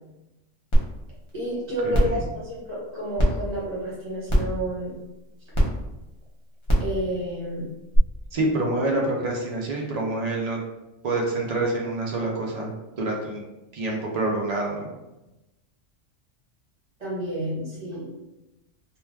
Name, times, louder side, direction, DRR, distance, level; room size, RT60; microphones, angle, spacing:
sound 1, 0.7-0.8 1.3-1.4 1.9-2.2 3.2-3.3 4.3-4.6 5.5-5.6 6.6-6.9 7.9-8.0, equal, 35° left, 0.5 m, -19 dB
voice 1, 1.3-4.9 6.8-7.7 17.0-18.1, right 1 dB, 35° right, -6 dB, 1.1 m, -30 dB
voice 2, 1.8-2.3 8.3-10.6 11.0-12.7 13.0-13.4 13.7-14.9, right 2 dB, 90° right, -1 dB, 0.3 m, -27 dB
2.4 x 2.2 x 3.2 m, 0.99 s
omnidirectional pair, 1.3 m